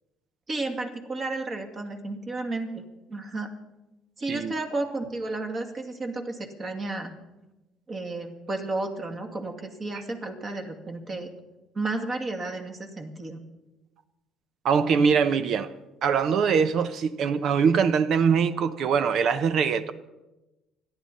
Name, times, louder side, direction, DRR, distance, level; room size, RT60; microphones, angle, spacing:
voice 1, 0.5-2.8 3.1-3.5 4.2-7.1 7.9-11.3 11.7-13.4, right 2 dB, 35° right, 2.3 m, -32 dB
voice 2, 14.6-15.7 16.0-19.9, right 6 dB, 55° right, 0.7 m, -23 dB
29.0 x 10.5 x 4.2 m
cardioid pair, 110°, 0 cm